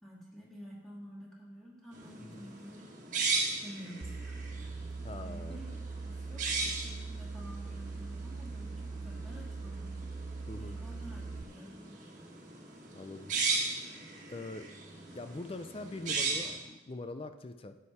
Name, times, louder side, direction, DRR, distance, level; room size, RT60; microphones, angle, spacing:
voice 1, 0.0-3.2 3.6-4.8 5.1-9.9 10.6-12.0, equal, ahead, -6 dB, 2.7 m, -50 dB
sound 1, 1.9-16.6, right 4 dB, 45° right, 1.6 m, -38 dB
sound 2, 4.0-11.4, right 4 dB, 30° right, 0.3 m, -41 dB
voice 2, 5.0-5.6 10.5-10.8 12.9-13.3 14.3-14.7 15.1-17.8, left 2 dB, 30° left, 9 dB, 0.5 m, -43 dB
11.0 x 8.6 x 4.2 m, 1.1 s
head